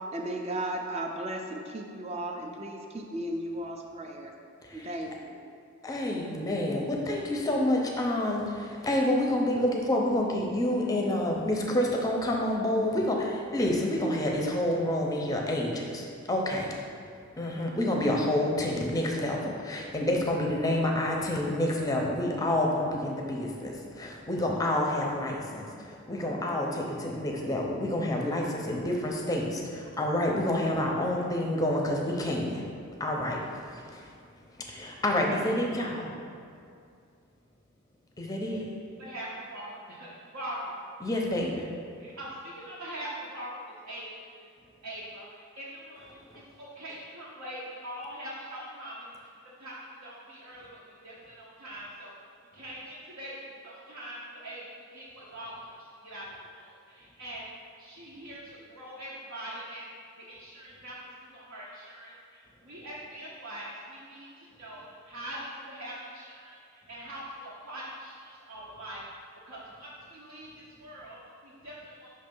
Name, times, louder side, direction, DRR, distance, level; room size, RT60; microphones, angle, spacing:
voice 1, 0.0-4.3 4.7-5.4, right 1 dB, 30° right, 2 dB, 0.5 m, -35 dB
voice 2, 5.8-16.7 17.4-32.6 33.0-34.0 34.7-36.1 38.2-38.6 41.0-41.7, left 1 dB, 15° left, 0 dB, 0.6 m, -28 dB
voice 3, 39.0-40.8 42.0-44.2 44.8-52.1 52.5-57.5 57.8-72.1, right 1 dB, 70° right, -7 dB, 0.8 m, -43 dB
5.5 x 3.2 x 5.3 m, 2.3 s
head